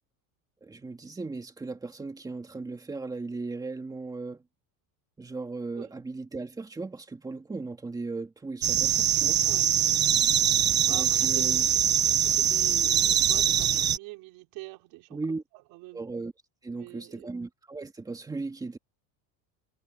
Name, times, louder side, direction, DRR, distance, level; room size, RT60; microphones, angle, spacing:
voice 1, 0.6-4.4 5.2-9.4 10.9-11.7 15.1-15.4 15.9-16.3 16.6-18.8, right 3 dB, 10° right, 2.3 m, -37 dB
sound 1, 8.6-14.0, right 9 dB, 25° right, 1.5 m, -23 dB
voice 2, 10.8-15.4 15.7-16.1 16.7-17.3, right 21 dB, 55° right, 5.3 m, -44 dB
cardioid pair, 180°, 42 cm